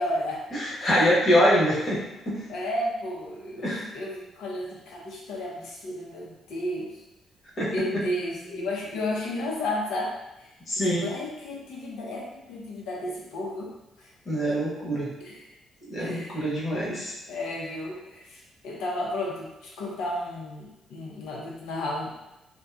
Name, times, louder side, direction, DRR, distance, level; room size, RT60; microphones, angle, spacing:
voice 1, 0.0-0.4 0.8-1.1 2.5-7.0 7.7-10.5 10.9-13.7 14.0-14.1 14.5-14.6 15.2-15.4 16.0-16.4 17.3-22.1, left 1 dB, 90° left, -3 dB, 0.6 m, -33 dB
voice 2, 0.5-2.4 3.6-3.9 7.6-7.7 10.7-11.1 14.2-15.1 15.9-17.1, equal, 45° left, -7 dB, 1.1 m, -24 dB
2.7 x 2.2 x 2.3 m, 0.96 s
cardioid pair, 90°, 0 cm